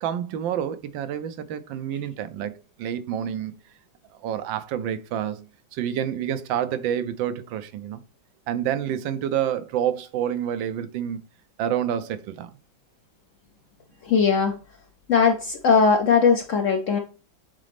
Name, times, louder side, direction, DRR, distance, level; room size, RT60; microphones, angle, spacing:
voice 1, 0.0-3.5 4.2-5.4 5.7-8.0 8.5-11.2 11.6-12.5, right 9 dB, 80° right, 1.3 m, -28 dB
voice 2, 14.1-14.6 15.1-17.0, left 5 dB, 70° left, 0.7 m, -19 dB
7.6 x 4.1 x 3.4 m
omnidirectional pair, 2.1 m